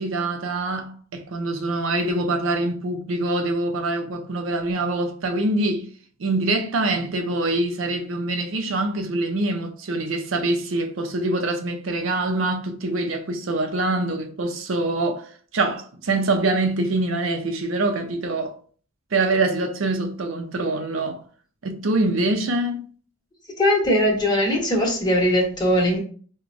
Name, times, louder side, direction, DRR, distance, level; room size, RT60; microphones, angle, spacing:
voice 1, 0.0-5.9 6.2-15.3 15.5-18.5 19.1-21.2 21.6-22.9, right 2 dB, 75° right, 0.5 m, -24 dB
voice 2, 23.6-26.0, equal, 20° left, 1.0 m, -20 dB
4.6 x 2.1 x 2.5 m
head